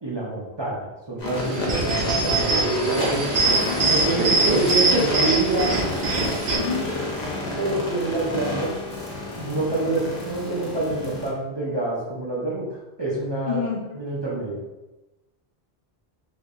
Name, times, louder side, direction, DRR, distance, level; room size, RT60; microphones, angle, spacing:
voice 1, 0.0-3.3 3.8-5.8 6.7-6.9 7.5-8.7 9.4-13.6 13.9-14.6, right 2 dB, 30° right, -6 dB, 0.6 m, -27 dB
sound 1, 1.2-11.3, left 2 dB, 80° left, 1.0 m, -30 dB
sound 2, 1.4-6.6, right 3 dB, 60° right, 0.8 m, -22 dB
voice 2, 3.5-4.0 6.6-6.9 13.5-13.9, left 7 dB, 60° left, -2 dB, 0.8 m, -29 dB
3.5 x 2.7 x 2.5 m, 1.0 s
omnidirectional pair, 1.1 m